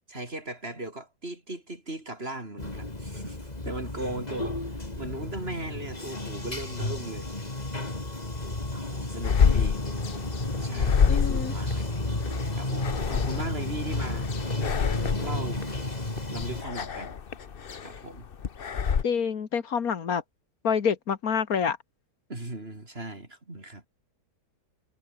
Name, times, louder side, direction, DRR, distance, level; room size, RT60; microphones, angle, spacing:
voice 1, 0.1-7.3 8.7-9.8 10.6-11.9 12.6-14.3 15.2-15.6 16.3-17.1 17.8-18.3 22.3-23.8, right 2 dB, 35° right, 5.0 m, -38 dB
Bathtub (filling or washing), 2.6-16.6, left 2 dB, 25° left, 3.2 m, -32 dB
sound 1, 9.2-19.0, left 6 dB, 40° left, 1.0 m, -28 dB
voice 2, 11.1-11.5 19.0-20.2 20.6-21.8, left 7 dB, 60° left, 1.9 m, -27 dB
omnidirectional pair, 1.8 m